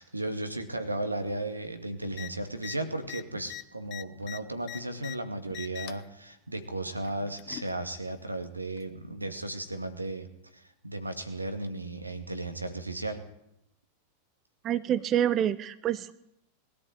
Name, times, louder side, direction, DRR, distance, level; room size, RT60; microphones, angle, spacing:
voice 1, 0.0-10.3 10.5-13.2, right 2 dB, 85° right, 8 dB, 2.2 m, -35 dB
sound 1, 2.1-2.3 2.6-2.8 3.0-5.2 5.5-6.1 7.0-7.7 8.8-8.9, left 14 dB, 35° left, 1.0 m, -42 dB
voice 2, 14.6-16.1, right 10 dB, 30° right, 15 dB, 0.8 m, -27 dB
21.5 x 13.5 x 9.0 m, 0.80 s
figure-of-eight pair, 90°, 0 cm